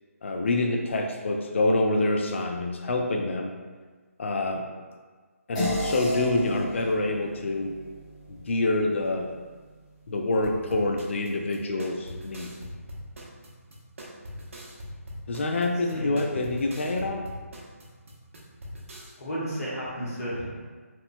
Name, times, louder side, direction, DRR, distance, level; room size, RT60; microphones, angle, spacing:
voice 1, 0.2-3.5 4.2-4.7 5.5-7.7 8.3-9.3 10.1-12.5 15.3-17.3, left 2 dB, 50° left, 3 dB, 0.3 m, -26 dB
sound 1, 5.5-10.3, equal, 30° left, 0.9 m, -35 dB
sound 2, 10.4-19.1, equal, 60° right, 0.6 m, -42 dB
voice 2, 19.2-20.6, equal, 70° left, -7 dB, 1.2 m, -32 dB
2.9 x 2.1 x 2.5 m, 1.4 s
figure-of-eight pair, 160°, 8 cm